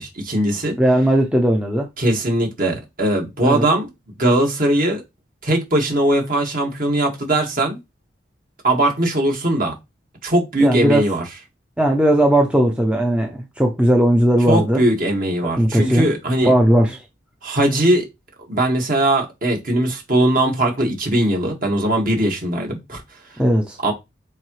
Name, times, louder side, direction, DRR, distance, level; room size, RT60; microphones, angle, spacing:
voice 1, 0.0-0.7 2.0-3.9 4.2-5.0 5.4-7.8 8.6-9.8 10.2-11.2 14.5-16.5 17.4-18.1 18.5-23.0 23.8-23.9, right 1 dB, 45° right, 2.0 m, -20 dB
voice 2, 0.8-1.9 3.4-3.7 10.6-11.0 11.8-14.8 15.6-16.1 16.4-17.0 23.4-23.8, right 1 dB, 5° right, 0.7 m, -17 dB
8.7 x 3.8 x 3.3 m
head